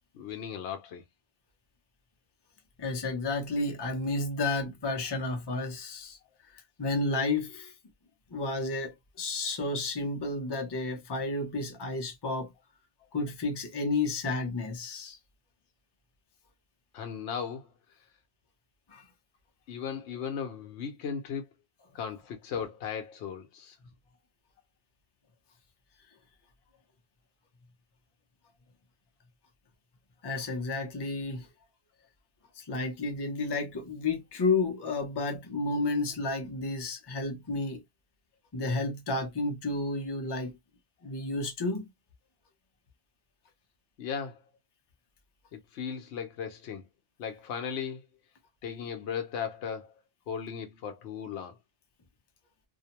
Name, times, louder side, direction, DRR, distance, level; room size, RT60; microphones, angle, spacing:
voice 1, 0.1-1.0 16.9-17.7 19.7-21.5 21.9-23.8 44.0-44.4 45.5-46.9 47.2-48.0 48.6-49.9 50.3-51.6, left 7 dB, 70° left, 0.8 m, -36 dB
voice 2, 2.8-6.2 6.5-7.7 8.3-12.5 13.1-15.2 18.9-19.1 30.2-31.5 32.6-37.8 38.5-40.6 41.0-41.9, left 3 dB, 30° left, 0.4 m, -31 dB
2.6 x 2.1 x 2.8 m
omnidirectional pair, 1.2 m